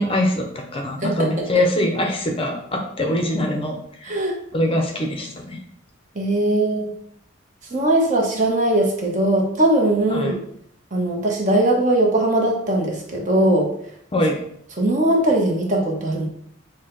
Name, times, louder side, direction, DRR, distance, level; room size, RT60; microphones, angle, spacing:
voice 1, 0.0-3.8 4.5-5.6 10.1-10.3 14.1-14.4, left 1 dB, 25° left, 2 dB, 0.6 m, -23 dB
voice 2, 4.0-4.3 6.1-7.0 7.7-10.4 10.9-13.7 14.8-16.3, right 1 dB, 40° right, 0 dB, 0.9 m, -20 dB
6.2 x 2.2 x 3.8 m, 0.68 s
head